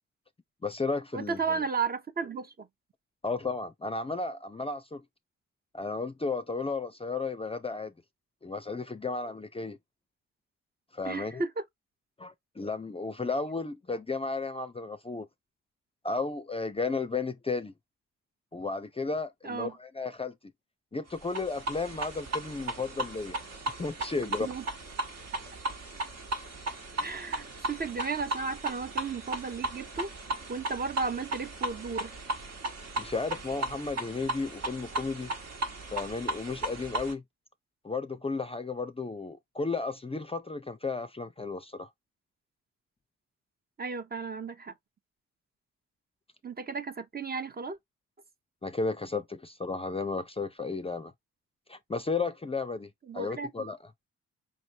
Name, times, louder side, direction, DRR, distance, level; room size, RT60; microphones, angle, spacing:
voice 1, 0.6-1.6 3.2-5.0 5.7-7.9 8.4-9.8 10.9-11.4 12.2-15.3 16.0-17.7 18.5-20.4 20.9-23.4 23.8-24.5 33.0-35.3 35.9-37.2 37.8-41.9 48.6-51.1 51.7-53.9, left 3 dB, 20° left, 0.5 m, -33 dB
voice 2, 1.1-2.7 11.0-11.6 19.4-19.7 24.4-24.6 27.0-30.1 30.5-32.1 43.8-44.7 46.4-47.8 53.1-53.7, right 4 dB, 30° right, 0.7 m, -34 dB
sound 1, 21.2-37.1, right 2 dB, 60° right, 1.2 m, -36 dB
5.3 x 3.0 x 2.7 m
cardioid pair, 65°, 30 cm